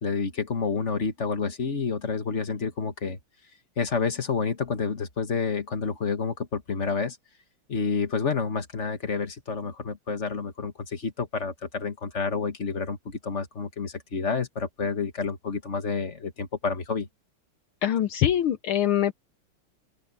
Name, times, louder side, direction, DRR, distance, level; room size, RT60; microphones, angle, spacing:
voice 1, 0.0-3.2 3.8-7.2 7.7-17.1, left 5 dB, 35° left, 1.6 m, -29 dB
voice 2, 17.8-19.1, left 11 dB, 75° left, 1.7 m, -23 dB
open air
omnidirectional pair, 2.4 m